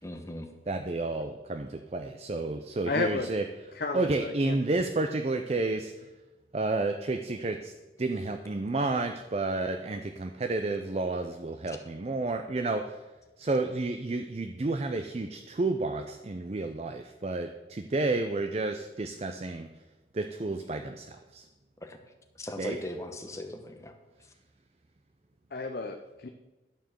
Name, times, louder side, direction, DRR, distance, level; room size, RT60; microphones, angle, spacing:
voice 1, 0.0-0.5 21.8-22.0 22.4-24.0, left 1 dB, 15° left, 5 dB, 1.0 m, -39 dB
voice 2, 0.7-3.4 3.9-5.9 6.5-7.7 8.0-13.0 13.4-19.7 20.1-21.5 22.6-22.8, right 2 dB, 35° right, 6 dB, 0.5 m, -31 dB
voice 3, 2.9-3.3 3.8-4.6 25.5-26.3, left 3 dB, 55° left, 5 dB, 0.6 m, -32 dB
12.5 x 4.5 x 7.4 m, 1.1 s
head